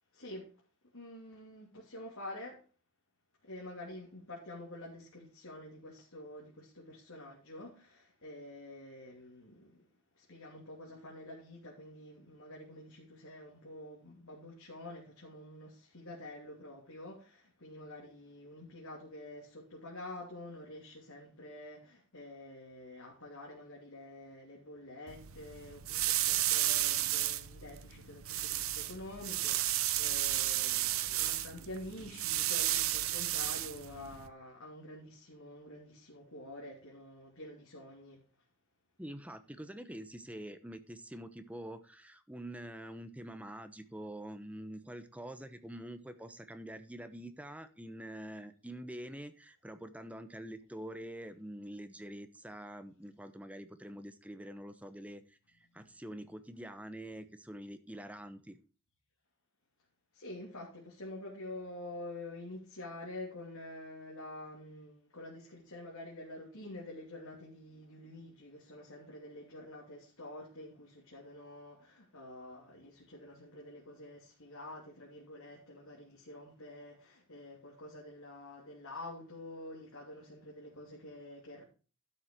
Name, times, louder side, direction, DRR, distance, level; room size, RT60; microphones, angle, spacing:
voice 1, 0.1-0.5 0.9-2.6 3.4-9.8 10.1-38.2 55.8-55.9 60.1-81.6, left 1 dB, 90° left, 3.0 m, -48 dB
sound 1, 25.1-34.3, right 14 dB, 80° right, 0.8 m, -33 dB
voice 2, 39.0-58.6, right 1 dB, 5° right, 0.9 m, -46 dB
12.0 x 6.5 x 4.6 m
head